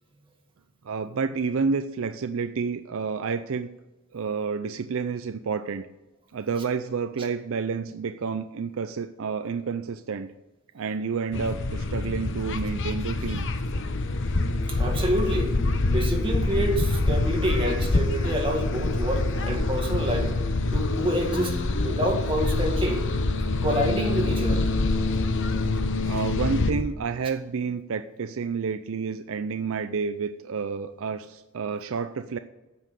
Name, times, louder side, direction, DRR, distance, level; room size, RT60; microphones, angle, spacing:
voice 1, 0.8-3.7 4.1-5.9 6.3-10.3 10.7-13.5 26.1-32.4, right 5 dB, 65° right, 11 dB, 0.5 m, -29 dB
sound 1, 11.3-26.7, left 2 dB, 60° left, 0.9 m, -26 dB
voice 2, 14.7-15.5 15.9-20.3 20.7-23.1 23.6-24.7, equal, 25° right, 1 dB, 2.0 m, -27 dB
9.4 x 7.4 x 8.2 m, 1.0 s
head